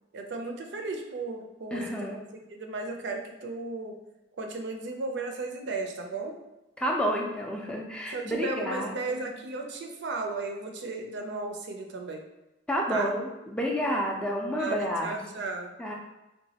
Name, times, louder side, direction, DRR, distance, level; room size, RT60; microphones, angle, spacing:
voice 1, 0.1-2.2 2.5-4.0 4.4-6.4 8.1-12.2 12.9-13.1 14.5-15.7, right 3 dB, 65° right, 3 dB, 0.4 m, -35 dB
voice 2, 1.7-2.1 6.8-9.3 12.7-15.2 15.8-15.9, equal, 5° left, -1 dB, 0.4 m, -30 dB
3.9 x 2.2 x 2.7 m, 0.98 s
head